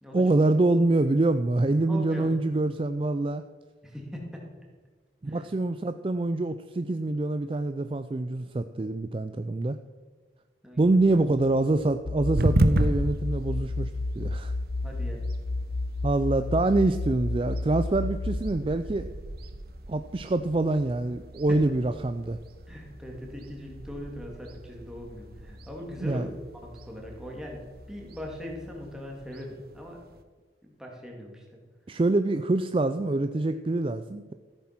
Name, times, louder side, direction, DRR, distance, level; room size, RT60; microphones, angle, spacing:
voice 1, 0.1-3.4 5.2-9.8 10.8-14.5 16.0-19.1 19.9-22.4 26.0-26.3 31.9-34.3, right 2 dB, 30° right, 10 dB, 0.4 m, -25 dB
voice 2, 1.9-2.4 3.8-4.4 5.3-5.5 10.6-10.9 14.8-15.3 21.5-21.6 22.7-26.3 26.6-27.6 27.9-30.0 30.6-31.4, equal, 5° right, -1 dB, 2.5 m, -40 dB
sound 1, 10.7-28.8, equal, 80° right, 1.4 m, -51 dB
sound 2, 12.1-18.5, left 2 dB, 50° left, 0.6 m, -31 dB
sound 3, 12.3-30.2, right 1 dB, 60° right, 0.9 m, -35 dB
14.5 x 8.7 x 5.9 m, 1.3 s
head